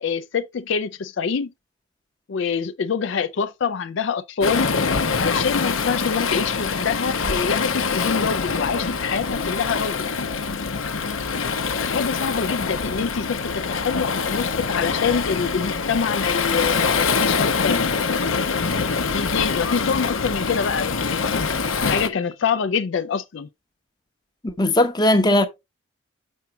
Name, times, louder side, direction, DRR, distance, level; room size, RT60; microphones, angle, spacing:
voice 1, 0.0-1.5 2.3-4.7 5.1-10.1 11.8-17.8 19.0-23.5, left 6 dB, 65° left, 0.4 m, -26 dB
Waves surf, 4.4-22.1, left 5 dB, 80° left, 0.8 m, -24 dB
sound 1, 10.2-22.4, left 8 dB, 40° left, 1.1 m, -52 dB
voice 2, 24.4-25.5, left 1 dB, 20° left, 0.8 m, -18 dB
7.2 x 5.8 x 3.0 m
head